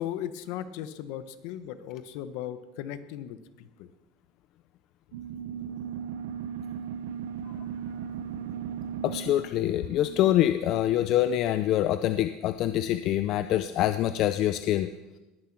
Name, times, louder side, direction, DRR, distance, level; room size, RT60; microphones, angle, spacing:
voice 1, 0.0-3.9, left 11 dB, 55° left, 13 dB, 1.0 m, -37 dB
sound 1, 5.1-11.4, right 8 dB, 85° right, 0.9 m, -37 dB
voice 2, 9.0-14.9, left 12 dB, 40° left, 11 dB, 0.5 m, -25 dB
19.5 x 10.5 x 6.0 m, 1.1 s
supercardioid pair, 170°, 0 cm